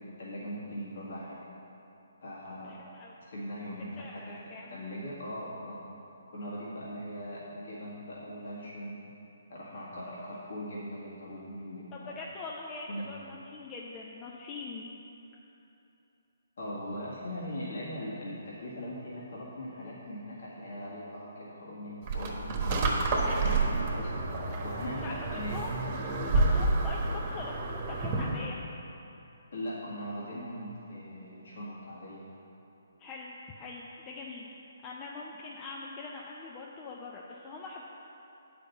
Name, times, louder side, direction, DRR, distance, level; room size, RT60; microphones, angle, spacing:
voice 1, 0.0-1.4 2.2-2.7 3.2-4.3 4.7-6.0 6.3-9.1 9.5-12.1 12.9-13.1 16.6-22.9 23.4-24.2 24.6-25.6 29.5-32.4, equal, 60° left, -7 dB, 1.9 m, -40 dB
voice 2, 2.6-3.1 4.0-4.8 11.9-14.9 22.7-23.0 25.0-25.7 26.3-28.6 33.0-34.5 34.8-37.8, left 3 dB, 25° left, -3 dB, 0.7 m, -43 dB
sound 1, 22.1-28.4, right 3 dB, 35° right, 1.2 m, -29 dB
8.3 x 5.2 x 6.8 m, 2.9 s
figure-of-eight pair, 140°, 0 cm